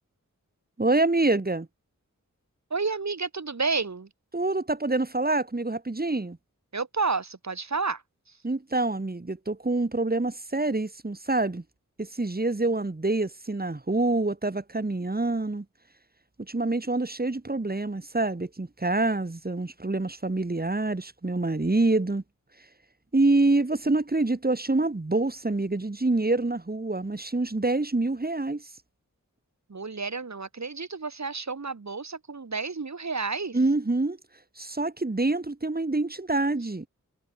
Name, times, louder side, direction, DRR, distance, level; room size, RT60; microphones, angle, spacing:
voice 1, 0.8-1.7 4.3-6.4 8.4-11.6 12.0-15.6 16.4-22.2 23.1-28.7 33.5-34.2 34.6-36.9, right 2 dB, 30° right, 3.1 m, -26 dB
voice 2, 2.7-4.1 6.7-8.0 29.7-33.6, right 4 dB, 60° right, 5.4 m, -30 dB
wide cardioid pair, 70°, 32 cm